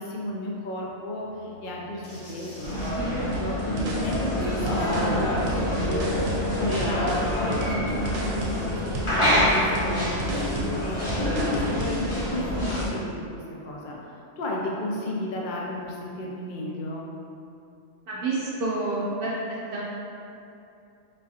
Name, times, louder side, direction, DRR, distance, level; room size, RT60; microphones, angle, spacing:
voice 1, 0.0-2.8 3.4-6.2 6.6-14.0 14.4-17.1, left 1 dB, 80° left, -3 dB, 0.4 m, -33 dB
sound 1, 1.2-6.8, right 1 dB, 45° left, 1.0 m, -39 dB
sound 2, 2.6-12.9, left 1 dB, 30° left, 0.7 m, -26 dB
sound 3, 3.3-12.0, right 2 dB, 85° right, 1.0 m, -35 dB
voice 2, 18.1-19.3 19.7-19.8, right 3 dB, 60° right, -6 dB, 0.6 m, -28 dB
3.8 x 2.4 x 2.7 m, 2.7 s
omnidirectional pair, 1.4 m